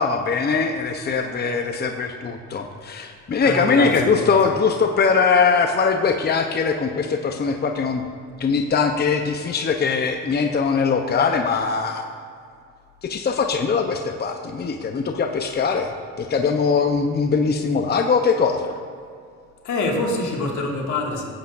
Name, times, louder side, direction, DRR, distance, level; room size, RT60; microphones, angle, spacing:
voice 1, 0.0-8.1 8.4-12.0 13.0-18.8, left 5 dB, 35° left, 4 dB, 0.7 m, -21 dB
voice 2, 3.4-4.3 19.6-21.2, left 2 dB, 80° left, -1 dB, 2.1 m, -25 dB
16.5 x 8.2 x 2.6 m, 2.3 s
cardioid pair, 90°, 30 cm